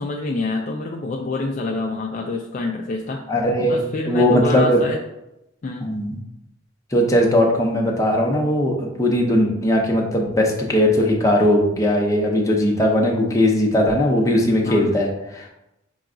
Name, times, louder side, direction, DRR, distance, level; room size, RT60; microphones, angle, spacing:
voice 1, 0.0-3.2 3.6-5.0 5.6-5.9 14.6-14.9, left 2 dB, 40° left, 1 dB, 0.4 m, -27 dB
voice 2, 3.3-4.8 5.8-6.2 6.9-15.5, left 1 dB, 15° left, -1 dB, 0.7 m, -19 dB
5.7 x 2.3 x 3.8 m, 0.89 s
head